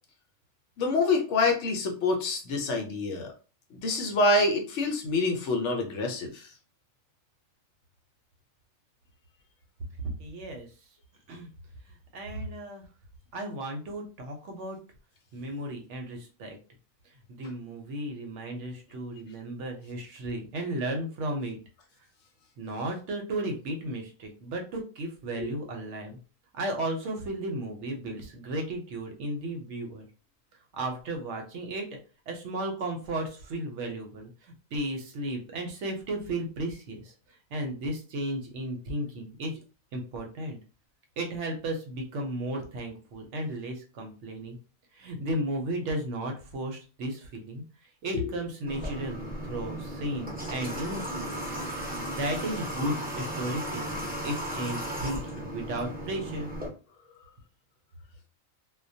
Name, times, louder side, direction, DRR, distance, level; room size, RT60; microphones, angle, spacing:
voice 1, 0.8-3.3 3.7-6.5 25.4-25.5 48.1-48.3, left 3 dB, 70° left, 3 dB, 0.8 m, -26 dB
voice 2, 10.2-10.7 11.3-11.5 12.1-12.8 13.3-14.8 15.3-16.6 17.3-21.6 22.6-26.2 26.5-30.1 30.7-32.0 32.3-37.1 37.5-39.6 39.9-40.6 41.2-44.6 44.9-47.6 48.0-51.3 51.7-56.5, right 1 dB, 65° right, 2 dB, 0.9 m, -34 dB
Water / Water tap faucet, 48.7-56.7, right 1 dB, 10° right, 0.5 m, -35 dB
2.2 x 2.1 x 2.6 m, 0.35 s
omnidirectional pair, 1.4 m